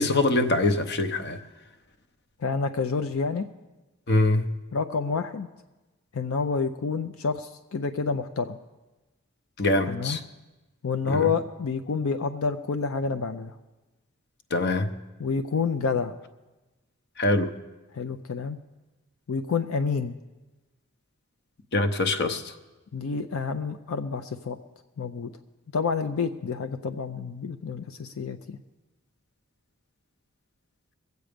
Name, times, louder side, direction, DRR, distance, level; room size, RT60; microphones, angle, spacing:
voice 1, 0.0-1.4 4.1-4.5 9.6-10.2 11.1-11.3 14.5-14.9 17.2-17.5 21.7-22.4, left 2 dB, 50° left, 9 dB, 0.8 m, -23 dB
voice 2, 2.4-3.5 4.7-5.5 6.1-8.6 9.9-10.2 10.8-13.5 15.2-16.1 17.9-18.6 19.3-20.2 22.9-24.6 25.0-25.3 25.7-28.6, left 5 dB, 80° left, 8 dB, 0.5 m, -28 dB
21.5 x 8.1 x 5.1 m, 1.1 s
head